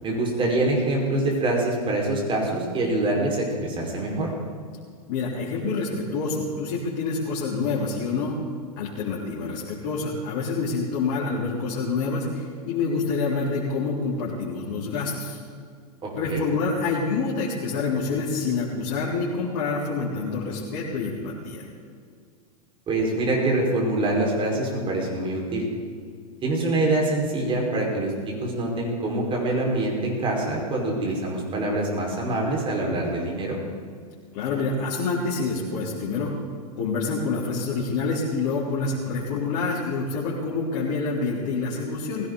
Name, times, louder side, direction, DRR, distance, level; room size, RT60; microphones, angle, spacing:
voice 1, 0.0-4.3 16.0-16.4 22.9-25.6 26.4-33.6, right 2 dB, 25° right, -1 dB, 5.0 m, -25 dB
voice 2, 5.1-8.4 8.8-15.4 16.1-21.7 34.3-36.3 36.8-42.3, left 4 dB, 55° left, -7 dB, 3.9 m, -27 dB
19.5 x 16.5 x 4.1 m, 2.1 s
hypercardioid pair, 110°, 20 cm